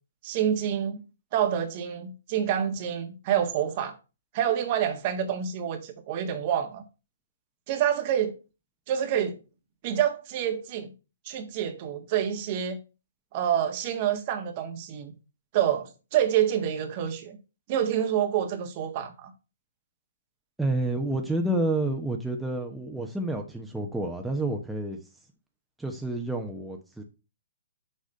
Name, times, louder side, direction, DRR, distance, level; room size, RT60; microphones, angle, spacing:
voice 1, 0.2-1.0 1.3-4.0 4.3-6.8 7.7-8.3 8.9-9.4 9.8-10.9 11.2-12.8 13.3-15.1 15.5-17.4 17.7-19.3, right 9 dB, 40° right, 1.3 m, -27 dB
voice 2, 20.6-25.0 25.8-27.0, right 1 dB, 5° right, 1.0 m, -29 dB
6.5 x 4.8 x 5.4 m
hypercardioid pair, 130°, 0 cm